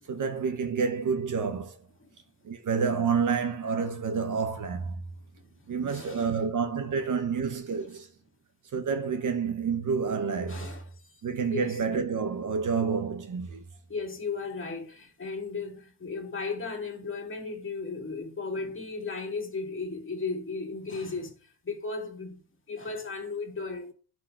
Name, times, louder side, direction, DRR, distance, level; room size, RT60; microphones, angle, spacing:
voice 1, 0.1-1.8 2.4-5.0 5.7-8.1 8.7-10.7 11.2-13.6, right 5 dB, 45° right, 1.0 m, -29 dB
voice 2, 5.8-6.3 10.5-11.2 11.5-11.8 13.9-22.4 22.7-23.9, left 4 dB, 25° left, 2.1 m, -35 dB
11.5 x 4.6 x 2.5 m
supercardioid pair, 90°, 44 cm